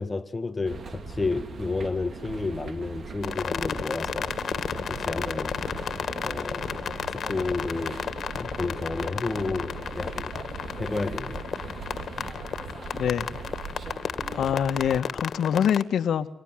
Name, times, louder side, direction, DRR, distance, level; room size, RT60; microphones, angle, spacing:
voice 1, 0.0-4.4 4.9-5.6 6.2-8.0 8.4-10.3 10.8-11.5, left 3 dB, 20° left, 1.5 m, -31 dB
sound 1, 0.6-15.0, right 4 dB, 45° right, 3.0 m, -39 dB
sound 2, 3.2-15.8, left 7 dB, 55° left, 2.2 m, -33 dB
voice 2, 12.9-13.3 14.3-16.3, left 8 dB, 75° left, 1.7 m, -25 dB
29.5 x 25.5 x 7.8 m
cardioid pair, 105°, 0 cm